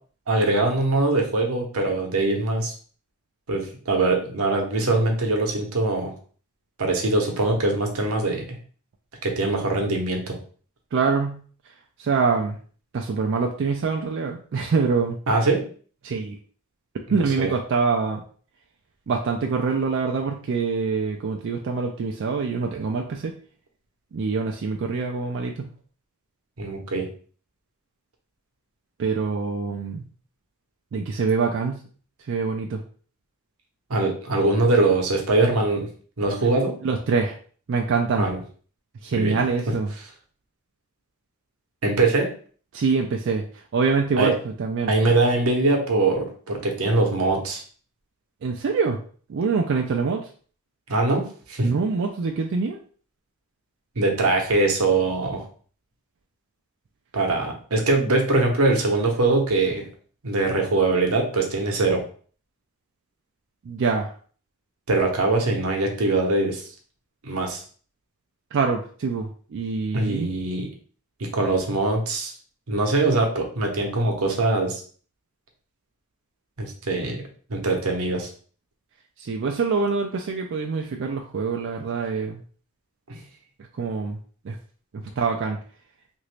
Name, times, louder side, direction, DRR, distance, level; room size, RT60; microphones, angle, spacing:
voice 1, 0.3-2.7 3.5-6.1 6.8-8.6 9.2-10.4 15.3-15.7 17.4-17.5 26.6-27.1 33.9-35.9 36.2-36.7 38.2-38.4 39.1-39.4 41.8-42.3 44.2-44.3 44.9-47.6 50.9-51.7 54.0-55.4 57.1-59.9 60.2-62.0 64.9-66.7 67.2-67.6 69.9-70.7 71.2-72.3 72.7-74.8 76.6-77.2 77.5-78.3 83.1-83.2, right 2 dB, 90° right, 2 dB, 0.8 m, -22 dB
voice 2, 10.9-11.4 12.0-12.6 12.9-15.2 16.0-16.4 17.1-18.2 19.1-23.3 24.1-25.7 29.0-30.0 30.9-31.8 32.3-32.8 36.4-36.5 36.8-37.4 37.7-38.3 39.0-39.9 42.7-44.9 48.4-49.0 49.3-50.3 51.6-52.8 63.6-64.1 68.5-70.3 79.2-82.4 83.7-84.2 84.4-84.6 84.9-85.6, right 4 dB, 60° right, 2 dB, 0.4 m, -25 dB
2.9 x 2.6 x 3.1 m, 0.43 s
head